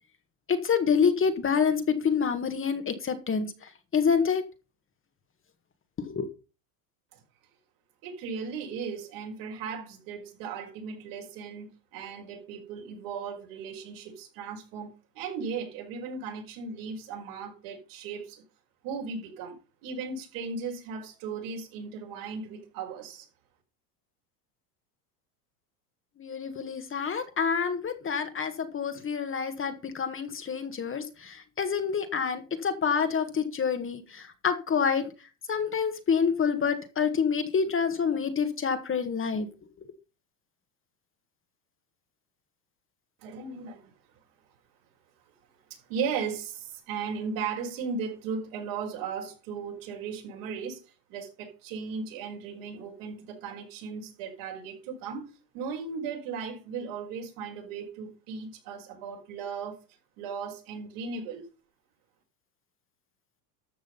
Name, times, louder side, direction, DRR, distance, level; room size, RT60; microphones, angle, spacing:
voice 1, 0.5-3.5 3.9-4.4 6.0-6.3 26.2-35.1 35.5-39.5, left 6 dB, 25° left, 1.7 m, -27 dB
voice 2, 8.0-18.4 18.8-19.5 19.8-23.3 43.2-43.9 45.7-50.8 51.1-55.2 55.5-59.8 60.2-61.5, right 5 dB, 65° right, 5.3 m, -36 dB
13.0 x 6.3 x 5.5 m
supercardioid pair, 110°, 49 cm